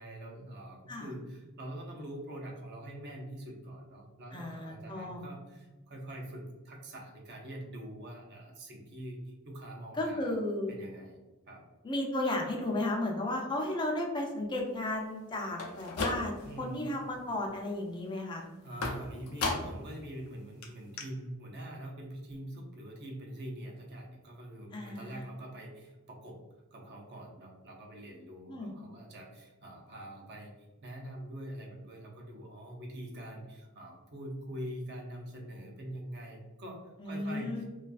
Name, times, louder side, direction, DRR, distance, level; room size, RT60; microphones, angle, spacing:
voice 1, 0.0-9.2 9.4-10.3 10.7-11.2 11.5-11.6 16.4-16.8 18.6-26.4 26.7-30.5 30.8-37.6, right 1 dB, 50° right, 0 dB, 0.5 m, -44 dB
voice 2, 4.3-5.2 10.0-10.9 11.8-18.4 24.7-25.2 28.5-28.7 37.0-37.6, left 1 dB, 20° left, 0 dB, 0.4 m, -34 dB
sound 1, 15.5-16.6 17.0-17.5 18.8-19.9 20.3-20.4 20.6-20.7 21.0-21.1, left 3 dB, 85° left, 0.5 m, -35 dB
2.4 x 2.3 x 2.3 m, 1.1 s
head